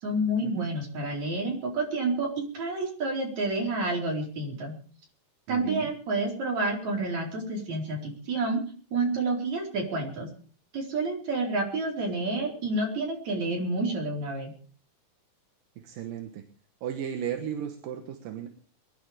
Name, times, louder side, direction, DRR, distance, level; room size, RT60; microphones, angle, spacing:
voice 1, 0.0-4.7 5.5-8.6 8.9-10.3 10.7-14.5, right 2 dB, 50° right, 1 dB, 5.5 m, -29 dB
voice 2, 5.5-5.9 15.8-16.4 16.8-18.5, right 9 dB, 80° right, 6 dB, 2.9 m, -35 dB
22.5 x 11.5 x 5.0 m, 0.41 s
omnidirectional pair, 4.0 m